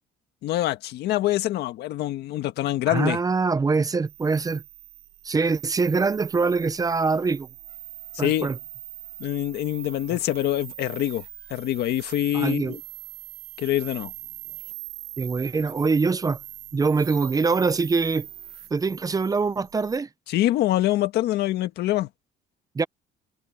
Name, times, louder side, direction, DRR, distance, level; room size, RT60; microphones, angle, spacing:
voice 1, 0.4-3.2 8.1-8.5 9.2-11.2 11.5-12.8 13.6-14.1 20.3-22.1, left 14 dB, 75° left, 1.6 m, -25 dB
voice 2, 2.9-4.6 5.2-7.5 8.2-8.6 10.1-10.2 12.3-12.8 15.2-16.4 16.7-18.3 18.7-20.1 22.7-22.8, right 4 dB, 20° right, 0.7 m, -24 dB
sound 1, 4.1-20.0, right 15 dB, 75° right, 1.4 m, -42 dB
cardioid pair, 110°, 17 cm